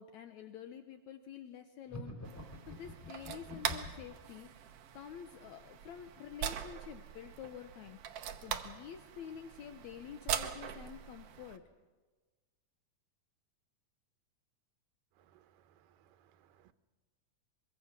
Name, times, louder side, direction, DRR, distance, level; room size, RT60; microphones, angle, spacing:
voice 1, 0.0-2.4 2.7-11.6, left 9 dB, 70° left, 2.0 m, -49 dB
sound 1, 1.9-4.1, left 1 dB, 5° left, 3.5 m, -46 dB
sound 2, 2.2-11.6, right 9 dB, 65° right, 1.6 m, -42 dB
voice 2, 15.2-16.7, right 10 dB, 90° right, 2.5 m, -67 dB
23.5 x 23.0 x 6.1 m
omnidirectional pair, 3.8 m